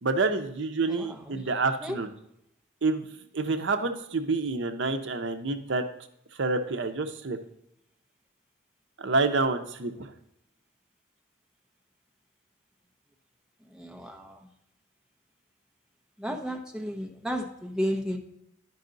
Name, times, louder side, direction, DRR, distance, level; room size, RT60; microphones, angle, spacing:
voice 1, 0.0-2.1 2.8-3.1 3.3-5.8 6.4-7.4 9.0-10.1, right 3 dB, 70° right, 7 dB, 0.7 m, -28 dB
voice 2, 0.9-1.4 1.8-2.0 13.7-14.4 16.2-18.2, equal, 5° right, 0 dB, 0.8 m, -33 dB
10.5 x 5.4 x 3.9 m, 0.79 s
head